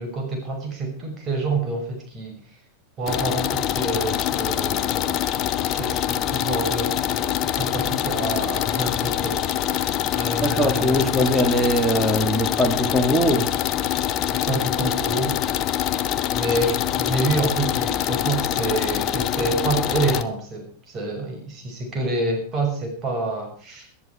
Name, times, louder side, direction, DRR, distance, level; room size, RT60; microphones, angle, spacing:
voice 1, 0.0-2.4 3.0-5.1 5.6-11.2 14.3-15.4 16.3-23.9, right 2 dB, 30° right, 3 dB, 6.0 m, -28 dB
sound 1, 3.1-20.2, left 11 dB, 35° left, 0.8 m, -25 dB
voice 2, 10.4-13.5, equal, 5° right, 5 dB, 2.6 m, -21 dB
19.0 x 11.5 x 4.6 m, 0.43 s
figure-of-eight pair, 90°, 0 cm